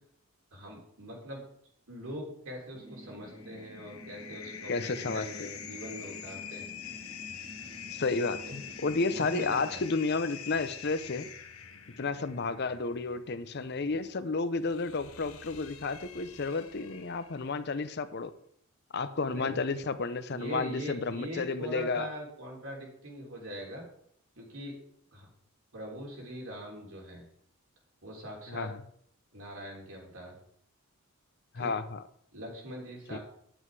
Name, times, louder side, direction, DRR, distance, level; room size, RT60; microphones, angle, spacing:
voice 1, 0.5-1.4 1.9-6.7 8.4-8.5 9.1-9.8 19.2-19.6 20.3-23.8 24.4-24.7 25.1-25.3 25.7-27.2 28.0-28.7 29.3-30.4 31.5-31.7 32.3-33.2, equal, 75° right, -1 dB, 3.4 m, -42 dB
sound 1, 2.7-9.8, equal, 40° right, 1.6 m, -50 dB
sound 2, 3.0-17.6, left 8 dB, 90° left, 1.3 m, -46 dB
voice 2, 4.7-5.5 7.9-11.3 12.0-18.3 18.9-22.1 28.5-28.8 31.5-32.0 33.1-33.2, left 3 dB, 50° left, 12 dB, 0.6 m, -32 dB
10.0 x 7.8 x 4.7 m, 0.68 s
head